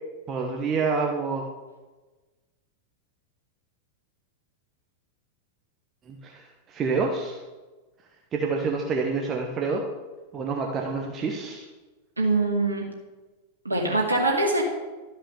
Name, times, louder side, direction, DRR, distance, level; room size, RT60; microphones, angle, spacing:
voice 1, 0.3-1.4 6.1-7.4 8.3-9.8 10.3-11.6, right 4 dB, 30° right, 1 dB, 1.2 m, -27 dB
voice 2, 12.2-12.8 13.6-14.6, right 2 dB, 80° right, 0 dB, 2.4 m, -23 dB
13.0 x 5.6 x 6.8 m, 1.2 s
figure-of-eight pair, 90°, 0 cm